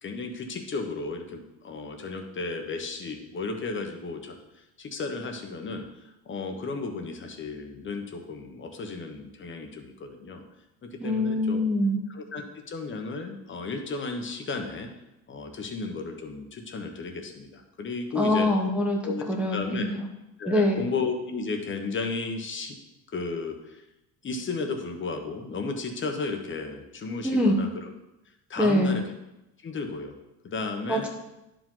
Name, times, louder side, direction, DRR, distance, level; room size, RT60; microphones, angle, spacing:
voice 1, 0.0-10.4 10.8-11.6 12.1-14.9 15.3-18.5 19.0-19.9 20.4-22.8 23.1-23.8 24.2-27.8 28.5-29.0 29.6-30.1 30.4-31.1, left 4 dB, 30° left, 4 dB, 1.1 m, -34 dB
voice 2, 11.0-12.0 18.2-19.0 19.3-20.0 20.5-20.8 27.2-27.6 28.6-29.0 30.9-31.1, left 1 dB, 5° right, -1 dB, 0.9 m, -24 dB
10.5 x 5.0 x 3.9 m, 0.95 s
cardioid pair, 125°, 43 cm